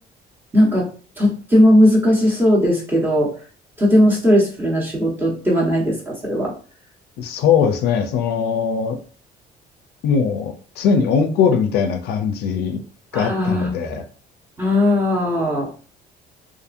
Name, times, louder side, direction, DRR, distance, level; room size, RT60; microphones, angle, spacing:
voice 1, 0.5-0.9 1.2-3.3 3.8-6.5 13.1-13.7 14.6-15.7, left 1 dB, 10° right, -4 dB, 1.1 m, -17 dB
voice 2, 7.2-9.0 10.0-12.8 13.1-14.0, left 6 dB, 75° left, 7 dB, 0.5 m, -20 dB
2.7 x 2.5 x 2.5 m, 0.40 s
cardioid pair, 110°, 17 cm